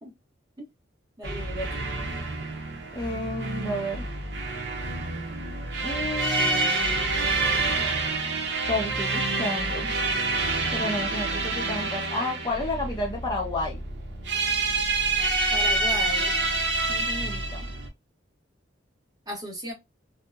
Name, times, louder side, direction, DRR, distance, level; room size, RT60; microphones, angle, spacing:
voice 1, 1.2-1.8 15.5-16.4 19.3-19.7, equal, 20° right, 0.9 m, -35 dB
sound 1, 1.2-17.9, right 3 dB, 65° right, 0.7 m, -27 dB
voice 2, 2.9-4.0 5.8-6.7 8.7-9.9 10.7-13.8 16.9-17.7, left 1 dB, 25° left, 0.5 m, -31 dB
2.7 x 2.0 x 2.2 m
head